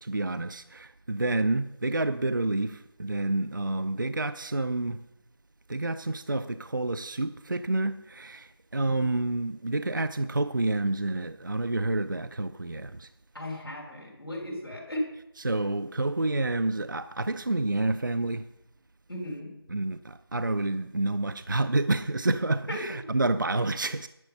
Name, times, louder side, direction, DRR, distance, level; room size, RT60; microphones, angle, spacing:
voice 1, 0.0-5.0 5.7-13.1 15.4-18.4 19.7-24.1, right 2 dB, 50° right, 0.4 m, -29 dB
voice 2, 13.3-15.1 19.1-19.6 22.7-22.8, left 1 dB, 70° left, 3.5 m, -36 dB
10.5 x 9.0 x 5.5 m
figure-of-eight pair, 180°, 13 cm